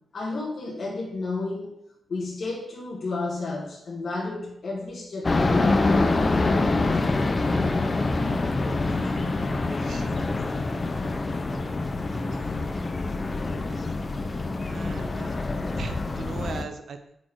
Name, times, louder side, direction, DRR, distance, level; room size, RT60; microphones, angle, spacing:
voice 1, 0.1-1.7 2.1-6.2, left 3 dB, 50° left, -3 dB, 1.4 m, -32 dB
sound 1, 5.2-16.6, left 3 dB, 25° left, 0.5 m, -25 dB
voice 2, 12.1-12.5 14.7-15.4 15.8-17.2, right 5 dB, 60° right, 7 dB, 0.6 m, -39 dB
8.7 x 4.3 x 4.7 m, 0.78 s
wide cardioid pair, 175°, 0 cm